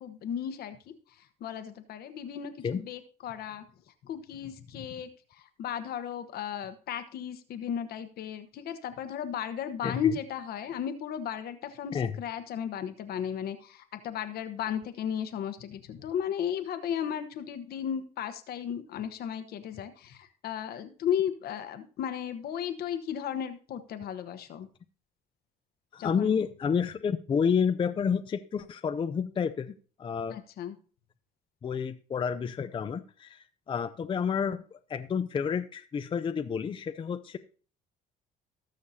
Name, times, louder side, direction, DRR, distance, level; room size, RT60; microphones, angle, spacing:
voice 1, 0.0-3.6 4.0-24.7 26.0-26.4 30.3-30.7, left 9 dB, 65° left, 10 dB, 1.1 m, -35 dB
voice 2, 9.8-10.1 11.9-12.1 25.9-30.4 31.6-37.4, left 6 dB, 30° left, 9 dB, 0.5 m, -30 dB
19.0 x 6.5 x 2.8 m, 0.40 s
cardioid pair, 110°, 17 cm